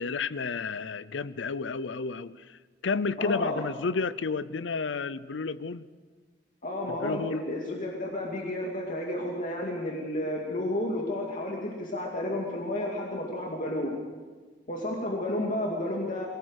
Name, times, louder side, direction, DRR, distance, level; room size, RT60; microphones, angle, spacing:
voice 1, 0.0-5.8 6.9-7.4, left 4 dB, 90° left, 17 dB, 0.6 m, -31 dB
voice 2, 3.2-3.6 6.6-14.0 14.7-16.3, left 1 dB, 45° left, -1 dB, 2.4 m, -31 dB
23.5 x 17.5 x 6.5 m, 1.4 s
head